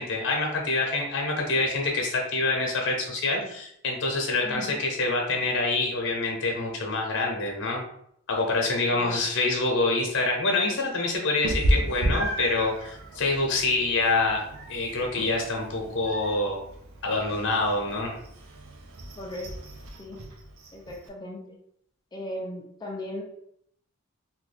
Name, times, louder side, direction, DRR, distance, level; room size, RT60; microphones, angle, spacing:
voice 1, 0.0-7.8 8.3-14.4 14.7-16.6 17.0-18.2, left 3 dB, 60° left, 1 dB, 0.8 m, -26 dB
voice 2, 4.4-4.8 19.2-19.5 20.0-20.2 20.7-21.6 22.1-23.2, left 1 dB, 20° left, 0 dB, 0.4 m, -37 dB
Meow, 11.4-21.1, equal, 70° right, 0.5 m, -33 dB
3.0 x 2.3 x 3.3 m, 0.71 s
head